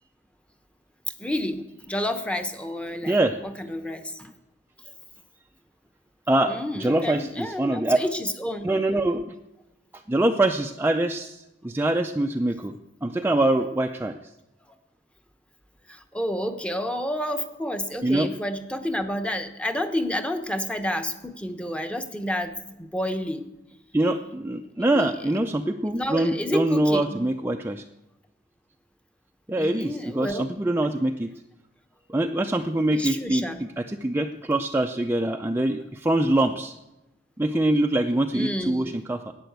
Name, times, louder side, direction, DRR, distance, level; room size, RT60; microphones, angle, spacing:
voice 1, 1.2-4.3 6.5-8.7 15.9-22.5 22.8-23.5 24.2-24.3 24.9-25.1 25.9-27.3 29.5-30.5 32.9-33.6 38.3-38.9, left 1 dB, 5° left, 7 dB, 0.9 m, -30 dB
voice 2, 3.0-3.4 6.3-8.0 8.6-9.3 10.1-12.7 13.0-14.2 18.0-18.3 23.9-27.8 29.5-31.3 32.1-36.7 37.4-39.3, right 1 dB, 10° right, 4 dB, 0.4 m, -24 dB
11.5 x 9.0 x 7.9 m, 0.95 s
head